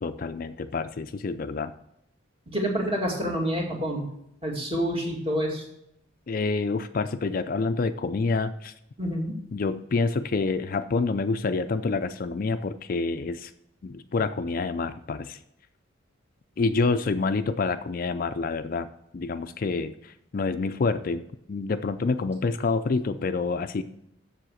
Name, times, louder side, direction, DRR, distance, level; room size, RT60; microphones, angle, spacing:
voice 1, 0.0-1.7 6.3-8.7 9.5-13.5 13.8-15.4 16.6-18.9 19.1-23.8, left 4 dB, 45° left, 10 dB, 0.4 m, -27 dB
voice 2, 2.5-4.0 4.4-5.6 9.0-9.3, equal, 30° right, -1 dB, 2.2 m, -27 dB
7.4 x 7.0 x 6.4 m, 0.77 s
head